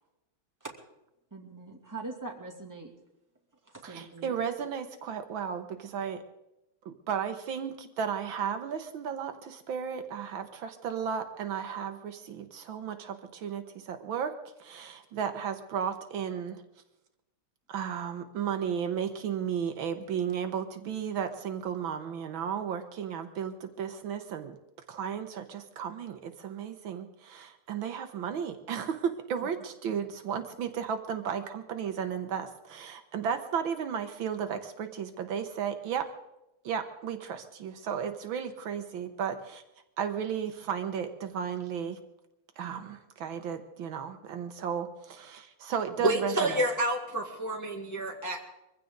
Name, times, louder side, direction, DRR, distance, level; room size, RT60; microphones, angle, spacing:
voice 1, 1.3-2.9 3.6-4.4 29.4-29.5, right 3 dB, 10° right, -1 dB, 2.5 m, -42 dB
voice 2, 3.8-6.2 6.8-14.3 14.6-16.6 17.7-24.6 24.9-36.1 36.6-39.6 40.0-42.0 42.6-46.6, right 7 dB, 70° right, 8 dB, 1.7 m, -34 dB
voice 3, 46.0-48.4, right 1 dB, 10° left, 1 dB, 1.3 m, -29 dB
23.5 x 15.5 x 3.9 m, 0.90 s
omnidirectional pair, 2.3 m